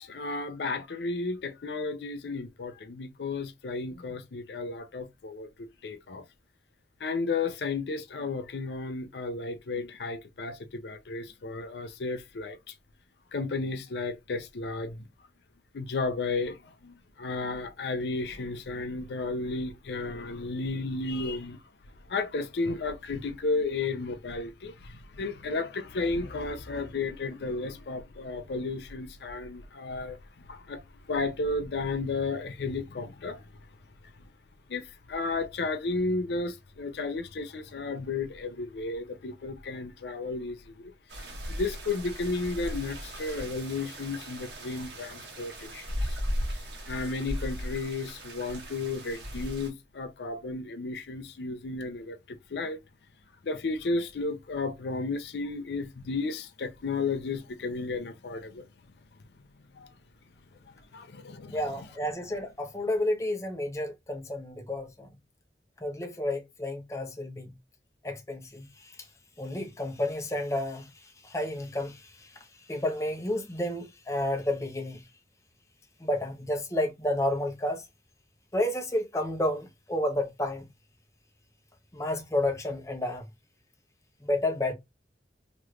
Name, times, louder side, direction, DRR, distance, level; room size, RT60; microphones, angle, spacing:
voice 1, 0.0-6.2 7.0-12.7 13.3-15.0 15.7-21.6 22.1-30.2 30.5-30.8 31.1-33.4 34.7-46.2 46.5-46.6 46.9-52.8 53.4-58.7 59.7-59.9 60.9-61.6, left 3 dB, 75° left, 0.5 m, -33 dB
sound 1, 41.1-49.7, equal, 80° right, 1.2 m, -37 dB
voice 2, 61.5-65.1 65.8-67.6 68.0-69.1 69.4-75.0 76.0-77.9 78.5-80.6 81.9-83.3 84.2-84.7, left 1 dB, 15° left, 0.7 m, -31 dB
3.1 x 3.0 x 2.3 m
head